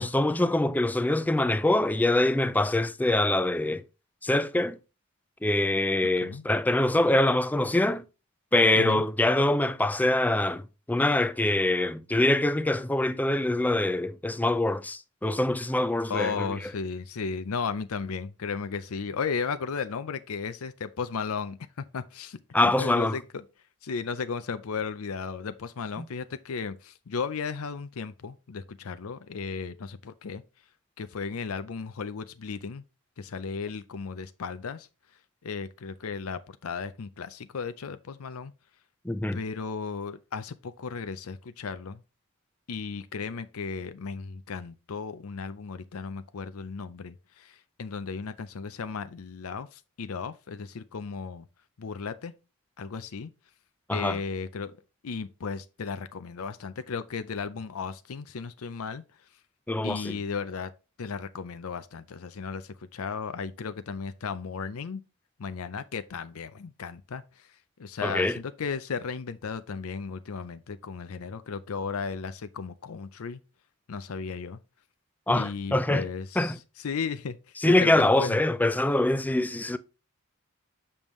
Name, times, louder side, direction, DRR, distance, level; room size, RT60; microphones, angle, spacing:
voice 1, 0.0-3.8 4.2-4.8 5.4-8.0 8.5-10.6 10.9-16.6 22.5-23.2 39.1-39.4 53.9-54.2 59.7-60.2 68.0-68.4 75.3-76.1 76.4-76.6 77.6-79.8, left 1 dB, 5° left, 0.3 m, -24 dB
voice 2, 16.1-23.2 23.8-30.4 31.0-32.8 33.2-34.9 35.4-38.5 39.3-42.0 42.7-51.5 51.8-52.3 52.8-53.3 53.9-54.7 55.0-59.0 59.8-60.7 61.0-65.0 65.4-67.5 67.8-73.4 73.9-74.6 75.3-78.4, left 5 dB, 75° left, 0.5 m, -35 dB
7.0 x 5.3 x 3.1 m
head